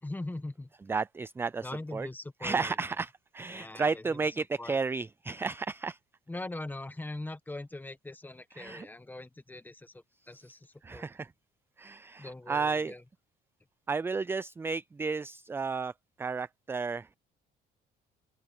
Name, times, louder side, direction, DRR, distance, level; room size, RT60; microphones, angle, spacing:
voice 1, 0.0-0.7 1.6-2.8 3.5-4.2 4.6-4.8 6.3-11.1 12.2-13.0, left 2 dB, 10° left, 1.5 m, -41 dB
voice 2, 0.8-2.1 2.4-6.0 8.5-8.9 10.2-11.3 11.8-13.0 13.9-17.1, right 4 dB, 15° right, 0.3 m, -33 dB
open air
cardioid pair, 110°, 17 cm